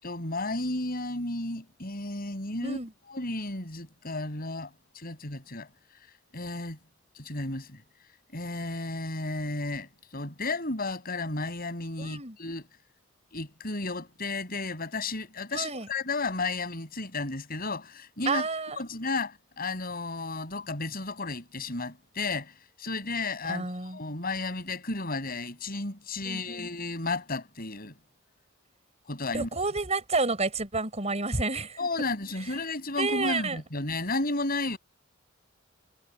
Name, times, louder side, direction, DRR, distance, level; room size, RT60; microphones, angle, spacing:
voice 1, 0.0-2.8 3.1-5.7 6.3-6.8 7.1-7.8 8.3-12.6 13.3-18.5 18.8-28.0 29.1-29.5 31.8-34.8, left 3 dB, 50° left, 6.4 m, -33 dB
voice 2, 12.0-12.4 15.5-15.9 18.3-18.8 23.5-24.0 26.2-26.7 29.3-31.8 32.9-33.6, right 3 dB, 35° right, 5.5 m, -30 dB
head